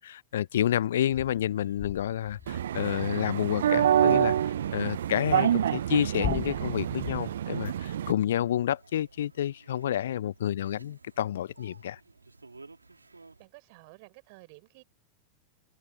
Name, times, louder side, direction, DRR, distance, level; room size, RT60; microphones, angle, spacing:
voice 1, 0.0-12.0, left 11 dB, 60° left, 0.5 m, -29 dB
sound 1, 1.5-13.5, right 3 dB, 80° right, 3.7 m, -56 dB
sound 2, 2.3-4.6 5.0-7.2, left 10 dB, 30° left, 2.2 m, -39 dB
sound 3, 2.5-8.1, right 10 dB, 65° right, 0.3 m, -27 dB
voice 2, 13.4-14.8, right 28 dB, 45° right, 7.6 m, -52 dB
figure-of-eight pair, 90°, 0 cm